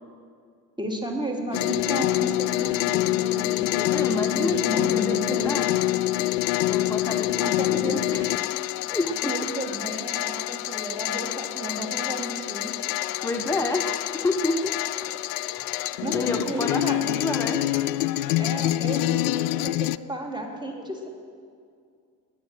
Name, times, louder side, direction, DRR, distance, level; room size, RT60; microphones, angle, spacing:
voice 1, 0.8-3.7 4.1-5.5 7.4-8.0 9.0-12.9 16.0-17.0 18.4-21.1, right 1 dB, 10° right, 1 dB, 3.0 m, -33 dB
sound 1, 1.5-20.0, left 16 dB, 60° left, 0.5 m, -26 dB
sound 2, 1.5-19.7, left 10 dB, 45° left, 1.1 m, -42 dB
voice 2, 3.7-5.8 6.7-8.3 8.9-9.3 13.2-14.8 15.6-17.6, left 2 dB, 5° left, 4 dB, 1.0 m, -29 dB
20.0 x 7.6 x 7.7 m, 2.2 s
figure-of-eight pair, 65°, 47 cm